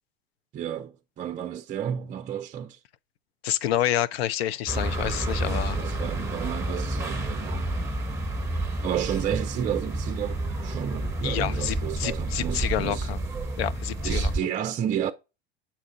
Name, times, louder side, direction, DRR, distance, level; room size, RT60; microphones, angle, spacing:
voice 1, 0.5-2.8 5.4-7.7 8.8-13.1 14.0-15.1, right 9 dB, 25° right, 0.5 m, -31 dB
voice 2, 3.4-5.8 11.2-13.2 13.6-14.3, left 12 dB, 70° left, 0.6 m, -28 dB
sound 1, 4.7-14.4, right 2 dB, 10° right, 1.3 m, -30 dB
7.2 x 2.4 x 5.6 m
hypercardioid pair, 95°, 32 cm